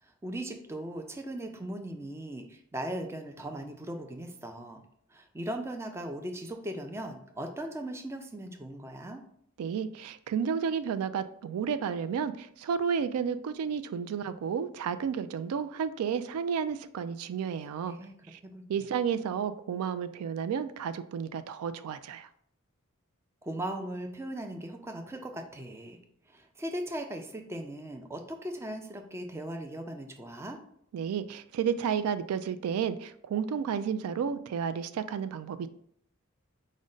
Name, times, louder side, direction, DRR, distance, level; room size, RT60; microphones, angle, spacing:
voice 1, 0.0-4.8 5.1-9.2 17.9-18.1 18.5-18.6 23.4-26.0 26.3-30.6, right 1 dB, 10° right, 4 dB, 0.3 m, -38 dB
voice 2, 9.6-18.0 18.3-18.4 18.7-22.3 30.9-35.7, right 7 dB, 85° right, 12 dB, 0.3 m, -32 dB
5.0 x 2.1 x 3.8 m, 0.67 s
head